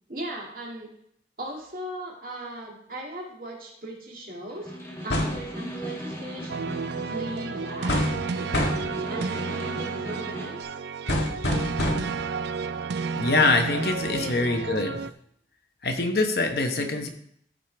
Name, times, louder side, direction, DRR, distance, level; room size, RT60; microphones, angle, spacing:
voice 1, 0.1-0.9 1.4-4.7 5.0-8.0 9.1-10.7 14.1-14.4 16.8-17.0, right 1 dB, 50° right, -2 dB, 2.3 m, -38 dB
Snare drum, 4.5-10.6, equal, 15° left, 1.7 m, -38 dB
sound 1, 5.1-5.5 7.9-8.3 8.5-8.9 11.1-12.2, left 1 dB, 85° left, 1.6 m, -26 dB
sound 2, 6.5-15.1, right 5 dB, 70° right, 0.4 m, -32 dB
voice 2, 13.2-15.0 15.8-17.1, left 3 dB, 60° left, 4 dB, 1.1 m, -24 dB
14.0 x 5.2 x 3.4 m, 0.69 s
head